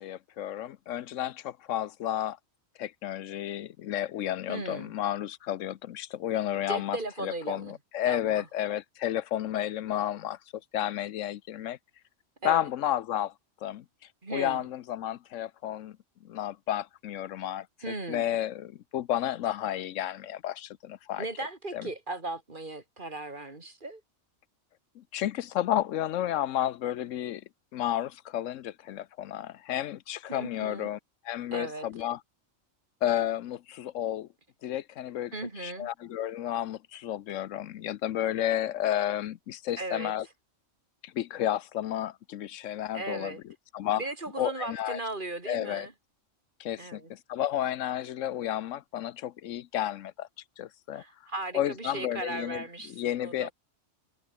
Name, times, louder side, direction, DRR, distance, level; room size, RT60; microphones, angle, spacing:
voice 1, 0.0-2.4 2.8-7.0 7.2-10.4 10.7-11.8 12.4-13.3 13.6-13.8 14.3-16.0 16.2-21.2 21.7-21.9 25.0-27.4 27.7-31.0 31.2-32.2 33.0-34.3 34.6-35.3 35.6-40.3 41.0-43.3 43.7-44.0 44.4-45.0 45.5-45.9 46.6-50.3 50.6-51.0 51.5-53.5, left 12 dB, 80° left, 1.0 m, -32 dB
voice 2, 4.5-4.9 6.7-7.8 8.0-8.5 12.4-12.7 14.2-14.7 17.8-18.4 21.2-24.0 30.3-30.9 31.5-31.9 35.3-35.9 39.8-40.1 42.9-43.4 44.0-45.9 46.8-47.1 50.9-53.5, right 2 dB, 40° right, 3.2 m, -37 dB
omnidirectional pair, 1.3 m